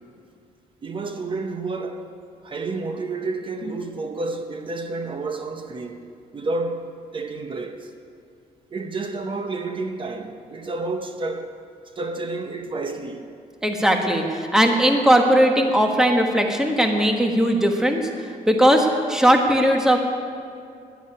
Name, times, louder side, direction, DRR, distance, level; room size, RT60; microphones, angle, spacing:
voice 1, 0.8-2.1 2.4-7.9 8.7-11.6 12.0-13.3, right 3 dB, 35° right, 0.8 m, -30 dB
voice 2, 13.6-20.0, equal, 5° right, 1.3 m, -19 dB
10.5 x 10.0 x 9.7 m
cardioid pair, 145°, 15 cm